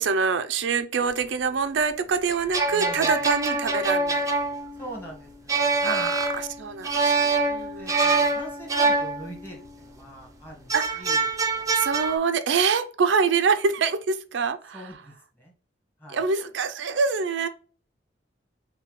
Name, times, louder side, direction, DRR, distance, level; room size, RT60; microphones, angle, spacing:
voice 1, 0.0-4.3 5.8-7.9 10.7-11.0 11.7-15.0 16.1-17.5, right 5 dB, 75° right, 0.4 m, -25 dB
sound 1, 2.3-9.8 10.7-12.2, right 3 dB, 20° right, 0.6 m, -25 dB
voice 2, 2.7-3.3 4.8-6.1 7.8-10.7 11.0-11.3 14.7-15.5 16.0-16.2, right 1 dB, 10° left, 1.4 m, -41 dB
5.5 x 2.2 x 3.1 m
head